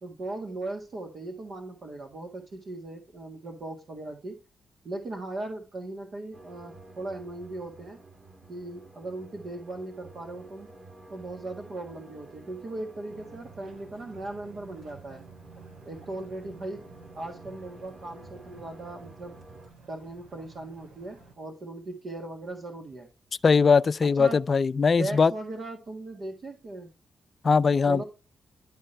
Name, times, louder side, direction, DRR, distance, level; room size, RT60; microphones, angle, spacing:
voice 1, 0.0-4.4 4.8-8.0 8.5-10.7 11.1-15.2 15.8-16.8 17.1-19.3 19.9-23.1 24.0-24.4 25.0-26.9 27.8-28.0, right 2 dB, 60° right, 1.8 m, -38 dB
sound 1, 6.3-19.7, right 2 dB, 45° right, 2.7 m, -50 dB
sound 2, 13.1-21.3, right 4 dB, 80° right, 2.9 m, -52 dB
voice 2, 23.4-25.3 27.4-28.0, left 5 dB, 50° left, 0.4 m, -20 dB
12.0 x 4.5 x 3.3 m
supercardioid pair, 55°, 0 cm